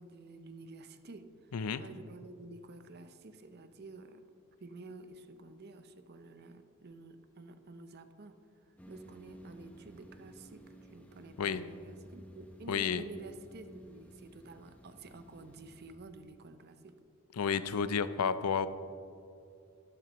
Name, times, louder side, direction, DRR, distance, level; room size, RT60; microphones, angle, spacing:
voice 1, 0.0-4.2 4.6-17.0, right 2 dB, 45° right, 10 dB, 0.6 m, -51 dB
voice 2, 1.5-1.8 11.4-11.6 12.7-13.0 17.3-18.7, left 6 dB, 85° left, 13 dB, 0.5 m, -31 dB
sound 1, 8.8-16.0, equal, 5° left, 0.8 m, -55 dB
13.0 x 12.0 x 3.0 m, 2.5 s
head